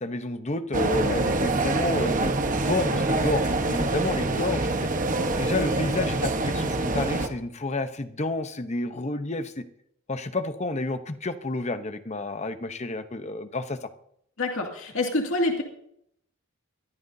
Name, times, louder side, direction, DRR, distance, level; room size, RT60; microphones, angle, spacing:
voice 1, 0.0-4.8 5.4-9.6 10.1-13.9, left 2 dB, 30° left, 10 dB, 0.9 m, -30 dB
sound 1, 0.7-7.3, right 2 dB, 40° right, 1.1 m, -25 dB
voice 2, 14.4-15.6, left 2 dB, 75° left, 1 dB, 2.3 m, -26 dB
22.0 x 15.0 x 2.7 m, 0.72 s
head